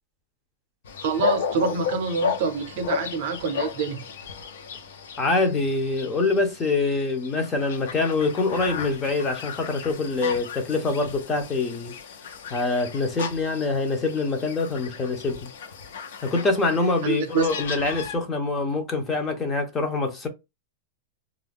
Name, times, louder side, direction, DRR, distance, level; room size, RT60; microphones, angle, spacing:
sound 1, 0.8-18.2, left 6 dB, 75° left, 0.6 m, -34 dB
voice 1, 1.0-4.0 17.0-17.5, right 5 dB, 50° right, 0.6 m, -26 dB
voice 2, 5.2-12.0 12.5-15.5 16.2-20.3, left 3 dB, 15° left, 0.5 m, -25 dB
2.3 x 2.1 x 3.4 m
supercardioid pair, 170°, 0 cm